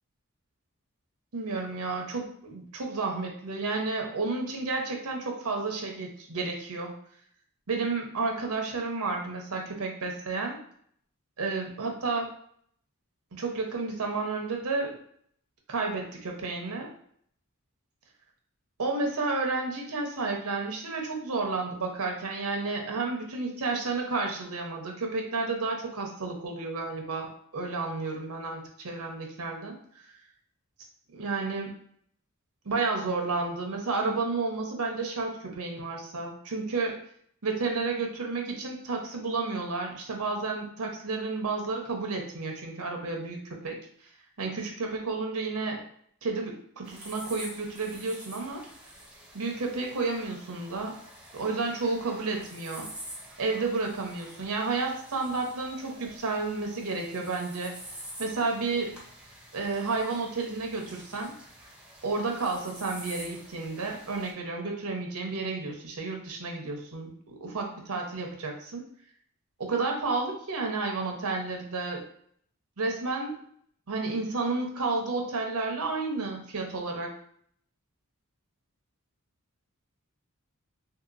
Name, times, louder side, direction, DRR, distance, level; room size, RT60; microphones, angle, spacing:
voice 1, 1.3-6.9 7.7-10.6 11.4-12.3 13.3-15.0 15.7-16.9 18.8-29.8 31.1-31.7 32.6-37.0 37.4-43.8 44.4-45.8 46.2-48.6 49.3-51.0 51.3-52.9 53.4-57.7 58.2-58.9 59.5-61.3 62.0-68.8 69.6-72.0 72.8-73.3 73.9-77.1, right 3 dB, 90° right, 2 dB, 0.8 m, -31 dB
sound 1, 46.8-64.3, right 1 dB, 5° right, 0.5 m, -47 dB
3.3 x 2.8 x 2.5 m, 0.63 s
head